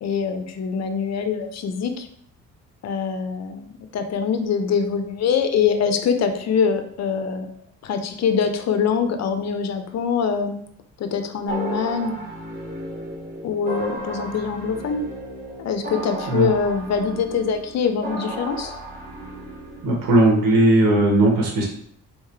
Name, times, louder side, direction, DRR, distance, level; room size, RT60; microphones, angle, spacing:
voice 1, 0.0-2.1 2.8-7.5 7.8-10.6 11.0-12.5 13.4-15.0 15.6-18.7, left 6 dB, 50° left, 8 dB, 0.7 m, -24 dB
sound 1, 11.5-20.2, right 1 dB, 25° right, 1.3 m, -34 dB
voice 2, 19.8-21.6, right 1 dB, 75° right, -2 dB, 1.6 m, -17 dB
3.9 x 3.5 x 3.2 m, 0.67 s
cardioid pair, 95°, 33 cm